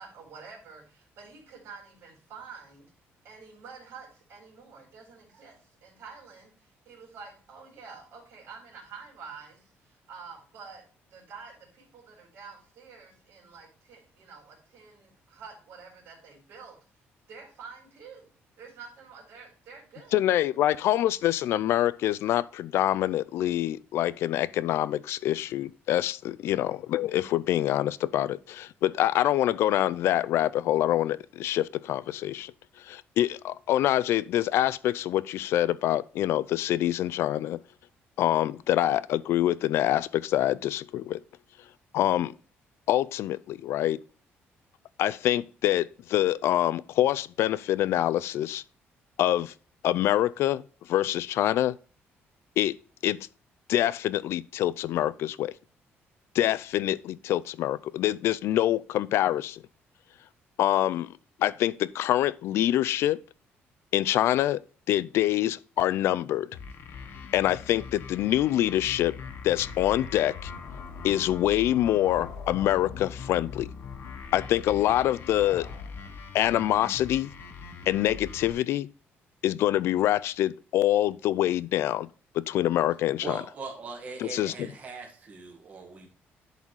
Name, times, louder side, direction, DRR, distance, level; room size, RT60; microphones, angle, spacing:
voice 1, 0.0-2.9 3.2-10.8 11.1-16.8 17.3-18.3 18.6-20.2, right 5 dB, 65° right, 3.8 m, -48 dB
voice 2, 20.1-32.5 32.8-37.6 38.2-41.2 41.9-42.3 42.9-44.0 45.0-48.6 49.2-49.5 49.8-50.6 50.9-51.7 52.6-52.8 53.0-53.2 53.7-55.5 56.3-59.6 60.6-61.1 61.4-63.2 63.9-64.6 64.9-66.5 67.3-69.1 69.4-70.5 71.0-73.7 74.3-75.7 76.3-77.3 77.9-78.9 79.4-82.1 82.3-83.4 84.2-84.5, left 13 dB, 70° left, 0.4 m, -25 dB
sound 1, 66.5-78.5, left 5 dB, 55° left, 1.2 m, -42 dB
sound 2, 70.3-76.2, left 9 dB, 85° left, 1.4 m, -48 dB
voice 3, 83.2-86.1, right 4 dB, 35° right, 1.9 m, -40 dB
11.0 x 4.1 x 4.7 m
cardioid pair, 175°, 5 cm